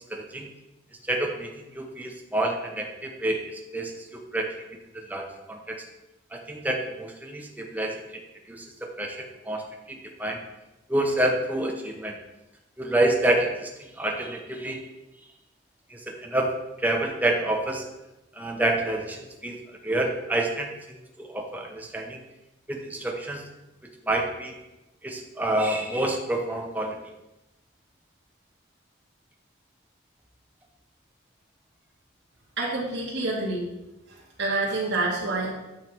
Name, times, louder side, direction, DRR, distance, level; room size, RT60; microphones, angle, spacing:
voice 1, 0.1-0.5 1.1-4.5 4.9-5.8 6.3-9.2 9.4-10.4 10.9-12.2 12.8-14.8 15.9-17.8 18.3-22.2 22.7-23.4 24.0-24.6 25.0-27.0, right 1 dB, 10° right, 1 dB, 0.9 m, -28 dB
voice 2, 32.6-33.7 34.1-35.5, right 2 dB, 65° right, -6 dB, 2.2 m, -28 dB
9.2 x 5.7 x 4.6 m, 0.98 s
head